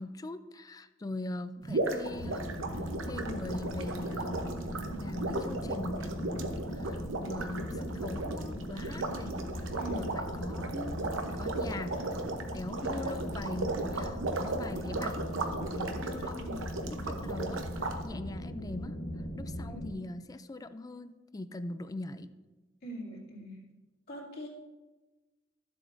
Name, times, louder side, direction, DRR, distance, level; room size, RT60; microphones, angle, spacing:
voice 1, 0.0-2.6 3.1-11.0 11.4-12.0 12.4-22.3, left 2 dB, 20° left, 12 dB, 0.3 m, -42 dB
sound 1, 1.6-18.0, right 2 dB, 90° right, 0.9 m, -36 dB
sound 2, 2.1-19.9, equal, 80° left, 1.1 m, -39 dB
voice 2, 22.8-23.6 24.1-24.5, right 1 dB, 50° left, -5 dB, 2.7 m, -42 dB
12.5 x 7.5 x 2.6 m, 1.2 s
head